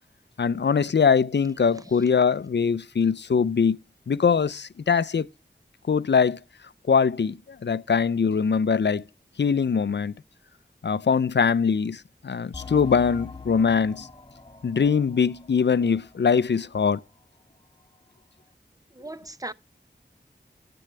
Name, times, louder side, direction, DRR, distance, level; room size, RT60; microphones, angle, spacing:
voice 1, 0.4-3.8 4.1-5.3 5.9-6.4 6.9-7.4 7.6-9.0 9.4-10.1 10.8-14.1 14.6-17.0, left 6 dB, 70° left, 0.5 m, -22 dB
voice 2, 1.7-2.0 18.9-19.5, right 2 dB, 20° right, 0.7 m, -39 dB
sound 1, 12.5-16.8 17.1-17.2 17.8-17.9, left 4 dB, 25° left, 1.9 m, -43 dB
13.5 x 7.8 x 3.3 m
wide cardioid pair, 60°, 19 cm